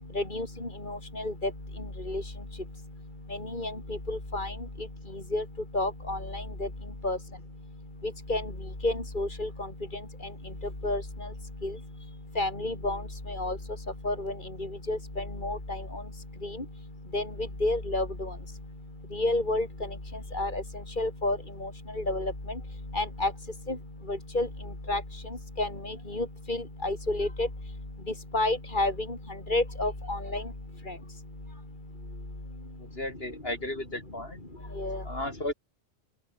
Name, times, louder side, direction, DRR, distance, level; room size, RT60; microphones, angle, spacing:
voice 1, 0.1-0.5 0.9-1.0 1.2-1.5 2.1-2.2 3.5-3.7 4.1-4.5 5.3-5.4 5.7-6.7 7.0-7.2 8.3-8.4 8.8-9.5 10.8-11.0 11.6-11.7 12.4-13.0 13.4-13.6 14.0-14.3 14.9-15.6 17.1-17.2 17.6-18.1 19.1-19.7 20.3-20.6 21.0-21.7 22.1-22.3 22.9-23.3 24.1-24.5 24.9-25.0 25.6-27.5 28.3-28.9 29.5-30.4 34.8-35.0, left 2 dB, 50° left, 5.1 m, -29 dB
voice 2, 32.8-34.4 35.0-35.5, left 1 dB, 65° left, 5.6 m, -34 dB
open air
omnidirectional pair, 1.1 m